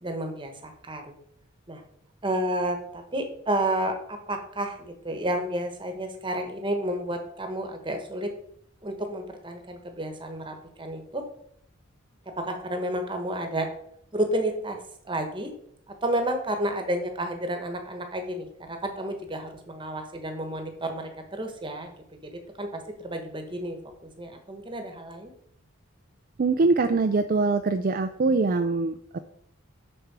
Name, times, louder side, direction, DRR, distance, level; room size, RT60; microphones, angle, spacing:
voice 1, 0.0-1.2 1.7-1.8 2.2-8.3 8.8-11.2 12.3-13.7 14.1-14.8 15.0-15.5 15.9-23.8 24.2-25.3, right 1 dB, 25° right, 5 dB, 1.1 m, -31 dB
voice 2, 26.4-29.2, right 3 dB, 40° right, 8 dB, 0.4 m, -23 dB
6.5 x 6.3 x 4.7 m, 0.70 s
head